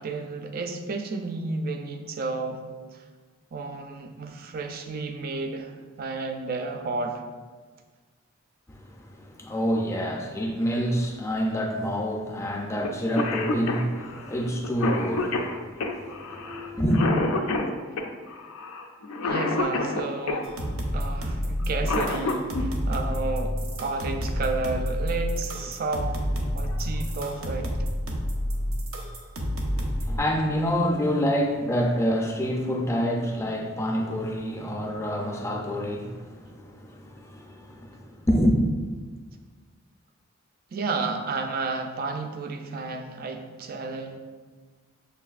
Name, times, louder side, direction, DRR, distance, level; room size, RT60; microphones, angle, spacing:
voice 1, 0.0-2.6 2.9-3.0 3.5-7.2 19.3-20.5 20.9-26.2 26.5-27.8 40.7-44.2, right 3 dB, 45° right, 5 dB, 0.4 m, -32 dB
voice 2, 8.7-17.1 29.7-38.5, equal, 15° left, 0 dB, 0.4 m, -27 dB
Cough, 12.8-12.9 13.2-20.5 21.6-22.7 24.3-24.4 25.4-25.7 26.2-26.3 26.6-27.1, left 3 dB, 85° left, 0.4 m, -29 dB
sound 1, 20.4-30.2, equal, 85° right, 0.7 m, -29 dB
6.6 x 2.5 x 2.4 m, 1.4 s
head